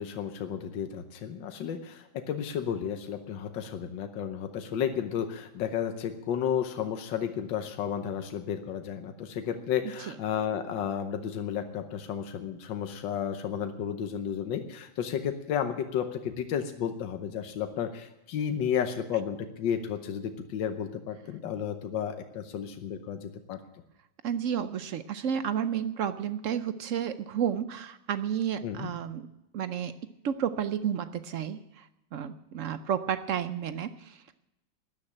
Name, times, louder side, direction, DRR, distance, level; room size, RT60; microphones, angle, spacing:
voice 1, 0.0-23.6 28.6-28.9, left 8 dB, 85° left, 7 dB, 1.6 m, -32 dB
voice 2, 24.2-29.3 29.5-29.9 30.2-34.3, right 8 dB, 65° right, 12 dB, 0.8 m, -31 dB
13.0 x 10.5 x 8.6 m, 0.90 s
omnidirectional pair, 2.0 m